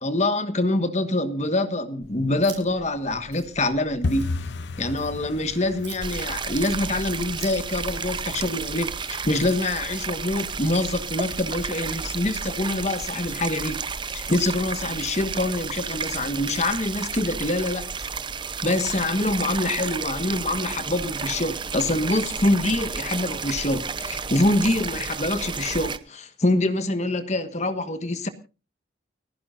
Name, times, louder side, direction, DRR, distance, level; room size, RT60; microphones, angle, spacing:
voice 1, 0.0-4.3 4.8-13.8 14.1-17.8 18.6-28.3, left 2 dB, 35° left, 1.4 m, -25 dB
sound 1, 2.0-8.5, right 5 dB, 70° right, 5.6 m, -46 dB
sound 2, 4.0-14.8 15.0-15.7 16.0-16.3 16.5-16.9 17.2-17.3 17.8-18.3 18.7-18.8 19.3-19.4, left 3 dB, 65° left, 0.6 m, -37 dB
sound 3, 6.0-26.0, right 5 dB, 25° right, 0.7 m, -32 dB
30.0 x 10.5 x 2.6 m
head